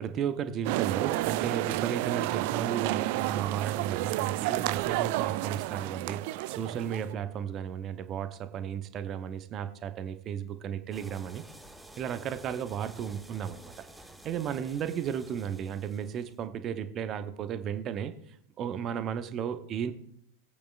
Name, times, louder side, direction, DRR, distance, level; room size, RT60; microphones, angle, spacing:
voice 1, 0.0-11.4 12.0-13.7 14.2-18.1 18.6-19.9, right 8 dB, 30° right, 10 dB, 0.9 m, -34 dB
sound 1, 0.6-7.1, right 18 dB, 45° right, 0.4 m, -30 dB
sound 2, 10.9-16.4, right 1 dB, 5° right, 0.9 m, -52 dB
21.0 x 8.4 x 2.5 m, 0.71 s
figure-of-eight pair, 90°, 0 cm